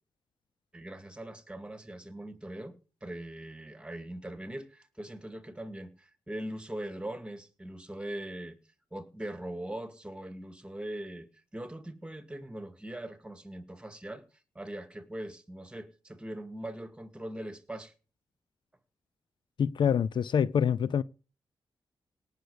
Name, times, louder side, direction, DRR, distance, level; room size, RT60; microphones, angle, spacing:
voice 1, 0.7-8.6 8.9-11.3 11.5-14.2 14.6-17.9, right 1 dB, 10° right, 2.1 m, -41 dB
voice 2, 19.6-21.0, left 7 dB, 70° left, 0.5 m, -26 dB
18.0 x 6.6 x 5.0 m
cardioid pair, 85°, 8 cm